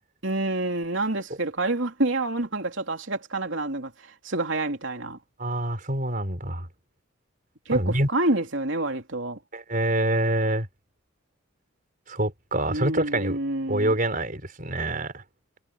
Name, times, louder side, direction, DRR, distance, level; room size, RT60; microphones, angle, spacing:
voice 1, 0.2-3.9 4.2-5.2 7.7-9.4 12.7-13.9, right 2 dB, 65° right, 3.2 m, -27 dB
voice 2, 5.4-6.7 7.7-8.1 9.5-10.7 12.1-13.4 13.7-15.2, right 1 dB, 40° right, 5.4 m, -26 dB
head